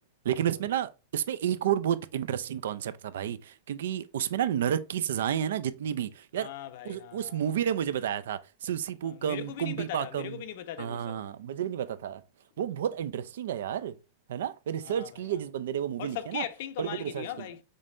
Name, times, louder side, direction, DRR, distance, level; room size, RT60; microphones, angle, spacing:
voice 1, 0.2-6.5 6.9-10.4 10.8-12.2 12.6-14.0 14.3-16.4 16.8-17.5, right 10 dB, 80° right, 0.4 m, -31 dB
voice 2, 6.4-7.6 9.0-11.2 14.8-15.4 16.0-17.6, left 11 dB, 55° left, 0.5 m, -40 dB
5.2 x 3.2 x 2.6 m
supercardioid pair, 165°, 0 cm